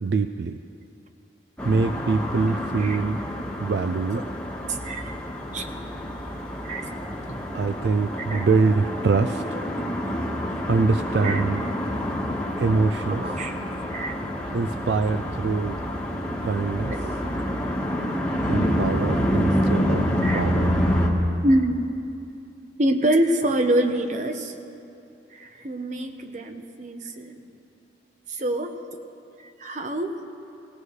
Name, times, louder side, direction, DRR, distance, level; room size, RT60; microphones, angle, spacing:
voice 1, 0.0-0.6 1.6-3.2 3.6-4.2 7.5-9.4 10.7-11.6 12.6-13.2 14.5-15.8 16.4-16.9 18.4-20.0 20.3-20.7, right 4 dB, 70° right, 9 dB, 0.4 m, -24 dB
sound 1, 1.6-21.1, equal, 5° left, 1.3 m, -27 dB
voice 2, 4.7-5.2 5.5-5.7 6.6-6.9 7.3-7.4 8.3-8.5 8.9-9.0 11.1-11.4 13.1-13.6 13.9-14.2 16.9-17.1 20.2-20.5 21.4-21.8 22.8-24.6 25.3-27.4 28.3-28.8 29.4-30.2, right 1 dB, 45° right, 7 dB, 0.8 m, -26 dB
18.5 x 18.0 x 3.2 m, 2.7 s
head